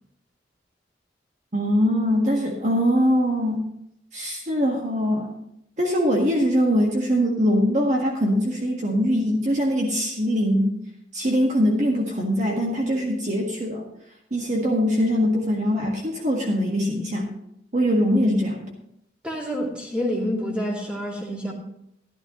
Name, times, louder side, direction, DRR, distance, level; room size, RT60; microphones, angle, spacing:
voice 1, 1.5-3.6 4.1-5.3 5.8-10.8 11.1-13.8 14.3-17.3 17.7-18.7, equal, 40° right, -1 dB, 1.6 m, -22 dB
voice 2, 19.2-21.5, equal, 5° right, -3 dB, 2.7 m, -28 dB
13.5 x 12.0 x 3.1 m, 0.75 s
head